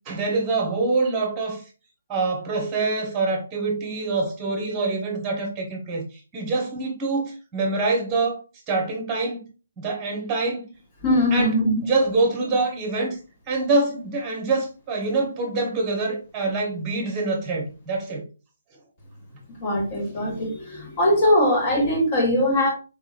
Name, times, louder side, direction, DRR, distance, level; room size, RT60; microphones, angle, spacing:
voice 1, 0.1-1.6 2.1-6.1 6.3-8.4 8.7-9.4 9.8-10.7 11.3-11.6 11.9-13.2 13.5-18.3, right 3 dB, 20° right, 1.2 m, -25 dB
voice 2, 11.0-11.8 19.5-22.7, left 1 dB, 30° left, 1.7 m, -21 dB
4.4 x 3.6 x 2.5 m
figure-of-eight pair, 140°, 0 cm